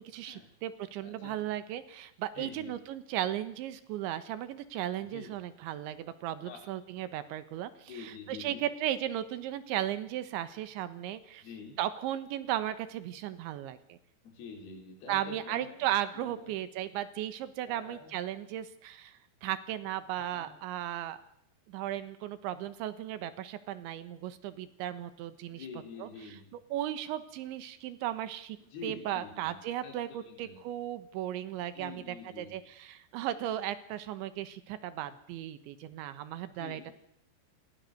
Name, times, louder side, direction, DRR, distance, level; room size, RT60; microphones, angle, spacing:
voice 1, 0.0-11.4 11.8-14.0 15.1-21.2 21.7-25.7 26.0-26.1 26.7-28.6 28.8-36.9, right 12 dB, 90° right, 12 dB, 3.7 m, -36 dB
voice 2, 1.0-1.3 2.4-2.8 5.0-5.3 6.4-6.6 7.9-8.6 11.4-11.8 14.2-15.9 16.1-16.6 17.7-18.1 20.2-20.5 25.5-26.6 28.7-30.6 31.7-32.6 36.6-36.9, left 5 dB, 60° left, 2 dB, 5.7 m, -47 dB
27.5 x 21.5 x 6.8 m, 0.73 s
omnidirectional pair, 5.2 m